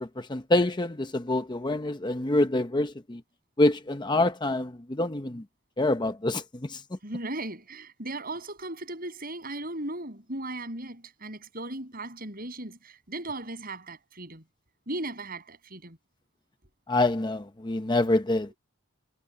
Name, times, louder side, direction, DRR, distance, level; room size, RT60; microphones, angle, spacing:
voice 1, 0.0-3.2 3.6-5.4 5.8-6.4 6.7-6.8 16.9-18.5, left 2 dB, 20° left, 0.8 m, -26 dB
voice 2, 7.0-14.4 14.9-16.0, right 2 dB, 45° right, 7.2 m, -37 dB
head